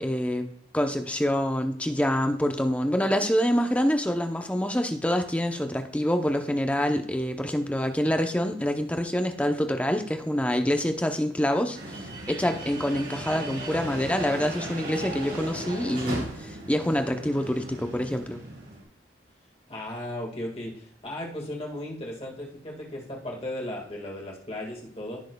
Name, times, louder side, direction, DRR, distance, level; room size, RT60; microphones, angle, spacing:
voice 1, 0.0-18.4, equal, 5° left, 6 dB, 0.6 m, -26 dB
sound 1, 11.7-18.8, right 1 dB, 80° right, 3.6 m, -36 dB
voice 2, 19.7-25.2, left 1 dB, 30° left, -1 dB, 1.8 m, -36 dB
15.5 x 6.2 x 2.3 m, 0.64 s
head